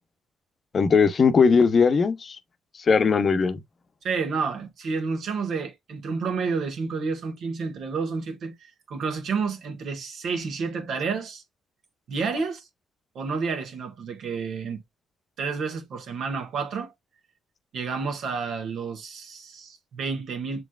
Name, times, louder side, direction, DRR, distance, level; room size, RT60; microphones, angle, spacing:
voice 1, 0.7-2.4 2.8-3.6, left 5 dB, 45° left, 0.8 m, -19 dB
voice 2, 4.0-8.5 8.9-11.4 12.1-12.7 13.1-14.8 15.4-16.9 17.7-20.6, right 5 dB, 65° right, 1.6 m, -30 dB
7.1 x 3.1 x 2.4 m
cardioid pair, 90°, 0 cm